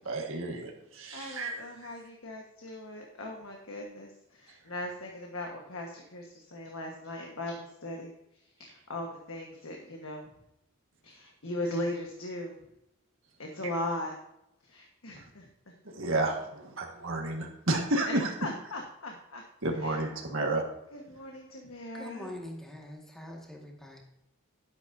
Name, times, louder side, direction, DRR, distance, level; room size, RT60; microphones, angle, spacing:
voice 1, 0.0-1.9 4.5-4.6 15.2-15.3 15.8-18.3 19.6-20.6, right 2 dB, 65° right, 1 dB, 1.8 m, -31 dB
voice 2, 1.1-8.1 8.6-10.3 11.0-12.6 13.4-14.1 14.6-15.5 18.0-18.1 18.4-19.4 19.8-20.0 20.9-22.3, left 1 dB, 75° left, 1 dB, 1.4 m, -38 dB
voice 3, 21.9-24.0, left 1 dB, ahead, -1 dB, 1.8 m, -43 dB
11.5 x 10.5 x 2.7 m, 0.83 s
head